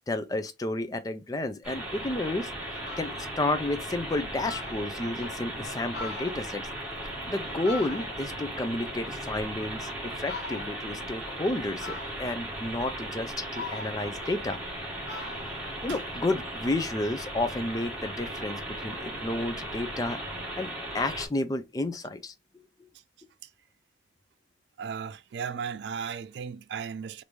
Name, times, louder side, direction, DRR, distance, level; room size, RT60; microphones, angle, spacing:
voice 1, 0.1-2.5 3.0-6.6 7.3-14.6 15.8-20.2 20.6-22.3, left 2 dB, 20° left, 0.4 m, -31 dB
sound 1, 1.6-21.3, right 1 dB, 5° right, 1.3 m, -37 dB
Fowl, 2.2-2.3 2.7-3.3 3.8-3.9 4.1-4.2 4.4-5.3 5.8-8.4 8.8-9.8 10.2-10.9 11.8-12.5 13.0-14.8 15.1-16.7, left 3 dB, 75° left, 0.8 m, -42 dB
voice 2, 24.8-27.2, right 6 dB, 75° right, 0.3 m, -35 dB
3.0 x 2.6 x 3.3 m
head